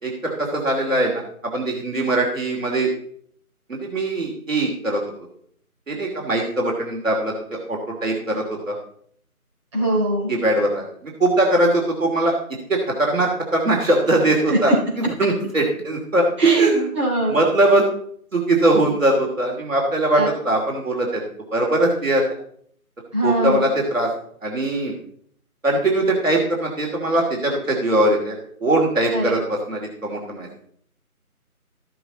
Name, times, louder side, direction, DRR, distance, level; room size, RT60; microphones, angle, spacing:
voice 1, 0.0-2.9 3.7-5.0 5.9-8.8 10.3-12.3 12.7-14.7 15.0-16.8 17.3-17.9 18.3-21.2 21.5-22.2 23.2-24.1 24.4-24.9 25.6-28.3 28.6-30.5, right 2 dB, 60° right, -1 dB, 2.9 m, -21 dB
voice 2, 9.7-10.3 14.5-14.7 16.4-16.7 16.9-17.4 20.1-20.3 23.1-23.6 29.1-29.5, right 1 dB, 20° right, -8 dB, 4.2 m, -22 dB
14.0 x 7.7 x 3.9 m, 0.63 s
figure-of-eight pair, 170°, 45 cm